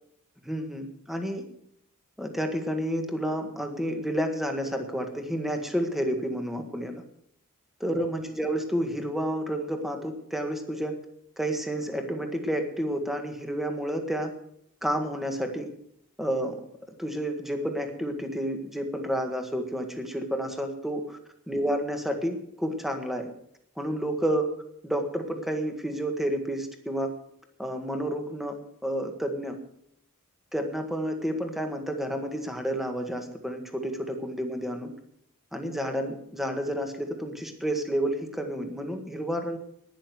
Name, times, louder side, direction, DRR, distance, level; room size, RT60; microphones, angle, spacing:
voice 1, 0.4-1.4 2.2-7.0 7.8-11.0 11.4-14.3 14.8-15.7 16.2-16.6 17.0-21.2 21.5-23.3 23.8-24.5 24.8-27.1 27.6-29.6 30.5-34.9 35.5-39.6, equal, ahead, 5 dB, 1.7 m, -30 dB
11.5 x 10.5 x 7.8 m, 0.73 s
head